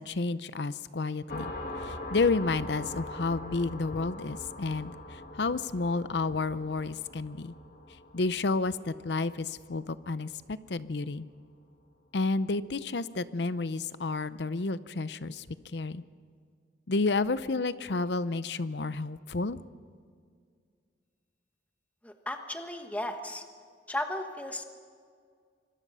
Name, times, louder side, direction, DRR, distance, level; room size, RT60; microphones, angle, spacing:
voice 1, 0.0-1.5 1.8-7.5 8.1-11.3 12.1-15.4 15.7-16.0 16.9-19.6, left 3 dB, 70° left, 15 dB, 0.7 m, -31 dB
sound 1, 1.3-10.5, left 1 dB, 55° left, 2.5 m, -42 dB
voice 2, 22.0-23.4 23.9-24.6, left 1 dB, 10° left, 5 dB, 1.3 m, -35 dB
25.5 x 21.0 x 5.6 m, 2.1 s
head